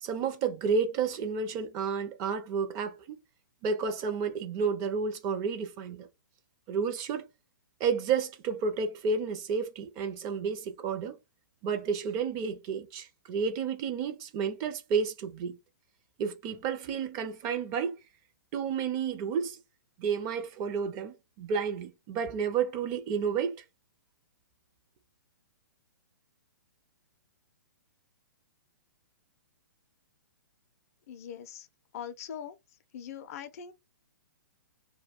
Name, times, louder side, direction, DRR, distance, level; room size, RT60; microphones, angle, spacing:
voice 1, 0.0-3.2 3.6-6.1 6.7-7.2 7.8-11.2 11.6-15.6 16.2-17.9 18.5-19.6 20.0-23.5, right 6 dB, 30° right, 0.5 m, -31 dB
voice 2, 31.1-31.7 31.9-32.5 32.9-33.7, left 8 dB, 45° left, 0.4 m, -41 dB
2.2 x 2.1 x 3.5 m
hypercardioid pair, 120°, 11 cm